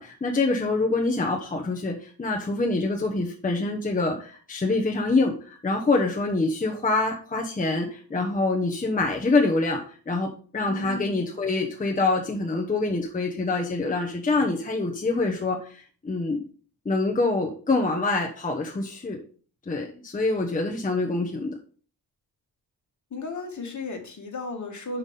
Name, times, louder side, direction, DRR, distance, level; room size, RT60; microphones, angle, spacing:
voice 1, 0.0-16.4 16.8-19.2 19.7-21.6, left 3 dB, 20° left, 1 dB, 1.0 m, -25 dB
voice 2, 10.7-11.4 23.1-25.0, left 3 dB, 45° left, 3 dB, 1.9 m, -35 dB
5.8 x 5.8 x 5.4 m, 0.41 s
wide cardioid pair, 140°, 42 cm